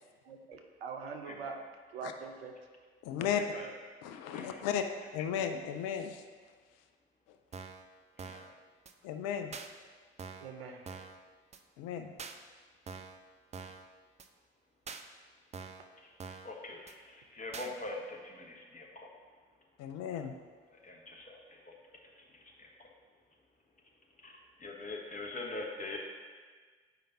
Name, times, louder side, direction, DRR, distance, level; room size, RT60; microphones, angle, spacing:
voice 1, 0.3-1.6 1.9-2.5 10.4-10.8, right 5 dB, 80° right, 4 dB, 0.5 m, -43 dB
voice 2, 3.0-3.4 4.0-4.8 5.1-6.2 9.0-9.5 11.8-12.1 19.8-20.3, left 9 dB, 55° left, 7 dB, 0.5 m, -35 dB
sound 1, 7.5-7.9 8.2-8.5 8.9-9.0 9.5-9.7 10.2-10.5 10.9-11.2 11.5-11.6 12.2-12.4 12.9-13.2 13.5-13.9 14.2-14.3 14.9-15.0 15.5-15.9 16.2-16.5 16.9-17.0 17.5-17.7, right 5 dB, 25° right, 0.4 m, -45 dB
voice 3, 16.4-16.8 17.3-19.1 20.8-21.2 24.2-24.3 24.6-26.0, left 2 dB, 25° left, 0 dB, 1.1 m, -42 dB
8.2 x 5.0 x 2.6 m, 1.5 s
figure-of-eight pair, 45°, 30 cm